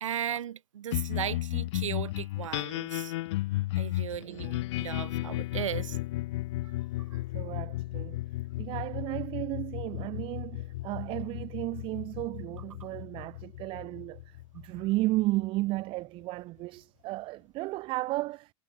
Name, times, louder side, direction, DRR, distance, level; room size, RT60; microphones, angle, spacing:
voice 1, 0.0-3.1 3.8-4.5 4.8-6.0, right 10 dB, 75° right, 0.8 m, -36 dB
sound 1, 0.9-15.6, left 18 dB, 60° left, 1.1 m, -34 dB
voice 2, 4.2-4.6 7.3-8.2 8.6-14.2 14.5-18.5, right 19 dB, 35° right, 0.4 m, -34 dB
hypercardioid pair, 95°, 16 cm